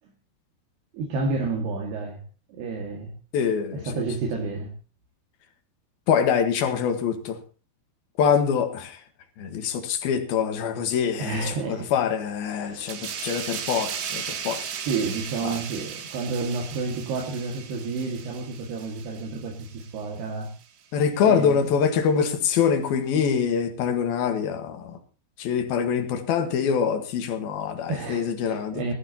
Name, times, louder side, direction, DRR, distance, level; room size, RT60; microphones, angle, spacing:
voice 1, 0.9-2.2 2.5-3.1 3.7-4.7 11.2-11.9 12.5-13.0 14.9-20.5 21.2-21.7 27.9-28.9, right 4 dB, 70° right, 4.0 m, -30 dB
voice 2, 3.3-3.9 6.1-7.4 8.2-9.0 9.4-14.7 15.4-15.6 20.9-25.0 25.4-28.8, left 7 dB, 65° left, 3.2 m, -24 dB
sound 1, 12.9-20.1 20.4-20.6, right 8 dB, 90° right, 4.1 m, -36 dB
19.0 x 14.0 x 2.9 m
omnidirectional pair, 4.8 m